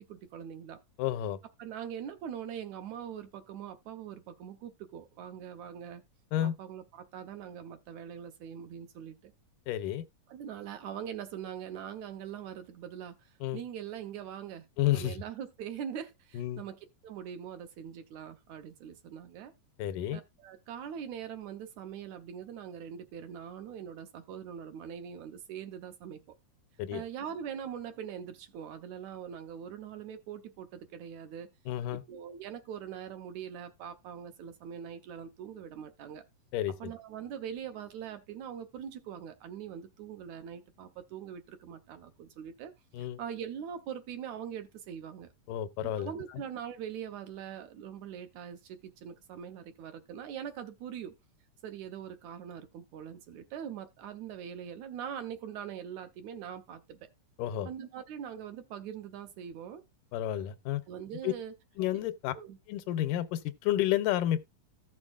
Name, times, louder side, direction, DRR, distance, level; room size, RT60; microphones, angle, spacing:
voice 1, 0.1-0.8 1.6-6.0 6.4-9.3 10.3-14.7 14.9-19.5 20.1-26.2 26.9-31.5 31.9-36.2 36.8-42.7 43.0-45.3 45.8-51.1 51.6-57.1 57.7-59.8 60.9-61.5 61.9-62.0 62.3-62.6, right 8 dB, 75° right, 1.9 m, -42 dB
voice 2, 1.0-1.4 6.3-6.5 9.7-10.0 13.4-13.6 14.8-15.2 16.3-16.6 19.8-20.2 26.8-27.0 31.7-32.0 36.5-36.9 42.9-43.2 45.5-46.1 57.4-57.7 60.1-60.8 61.2-61.3 61.8-62.3 62.7-64.5, left 12 dB, 85° left, 2.3 m, -31 dB
15.0 x 6.3 x 2.4 m
omnidirectional pair, 3.7 m